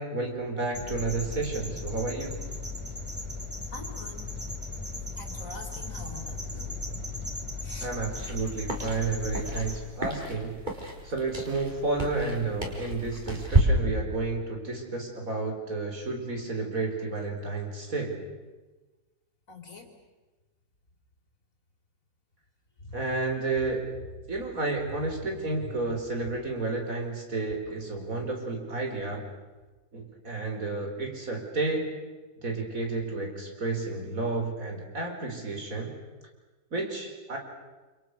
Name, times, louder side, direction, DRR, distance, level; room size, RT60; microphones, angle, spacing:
voice 1, 0.0-2.4 7.8-10.6 11.0-18.2 22.9-23.9 24.3-29.3 29.9-32.0 32.4-35.9 36.7-37.4, right 3 dB, 45° right, 2 dB, 5.1 m, -31 dB
sound 1, 0.7-9.8, left 3 dB, 5° right, 3.3 m, -37 dB
voice 2, 3.7-4.3 5.2-7.0 7.6-7.9 19.5-19.9 22.9-23.0, left 3 dB, 45° left, 3 dB, 4.0 m, -43 dB
sound 2, 8.1-13.6, right 2 dB, 25° right, 4.9 m, -31 dB
29.0 x 28.5 x 6.7 m, 1.2 s
omnidirectional pair, 1.9 m